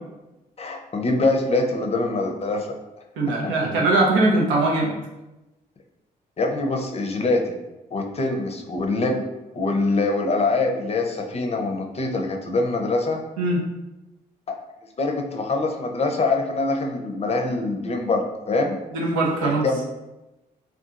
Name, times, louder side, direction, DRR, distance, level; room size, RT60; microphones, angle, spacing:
voice 1, 0.6-2.7 3.4-3.5 6.4-7.6 7.9-9.2 9.5-13.2 14.5-14.6 15.0-18.8 19.4-19.8, left 3 dB, 35° left, 2 dB, 0.5 m, -24 dB
voice 2, 3.2-5.0 13.4-13.6 18.9-19.6, right 2 dB, 85° right, -1 dB, 0.6 m, -21 dB
2.7 x 2.3 x 2.4 m, 1.0 s
hypercardioid pair, 50°, 19 cm